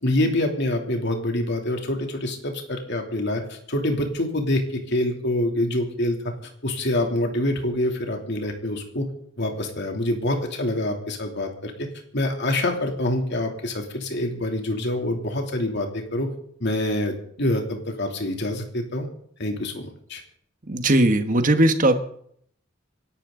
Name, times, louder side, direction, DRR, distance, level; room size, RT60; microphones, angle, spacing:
voice 1, 0.0-4.6 4.9-6.2 6.6-9.0 9.4-11.7 12.1-16.3 16.6-19.1 19.4-20.2, left 1 dB, 60° left, 3 dB, 2.9 m, -26 dB
voice 2, 20.7-22.0, right 1 dB, 40° right, 8 dB, 1.4 m, -19 dB
27.0 x 12.0 x 3.9 m, 0.65 s
head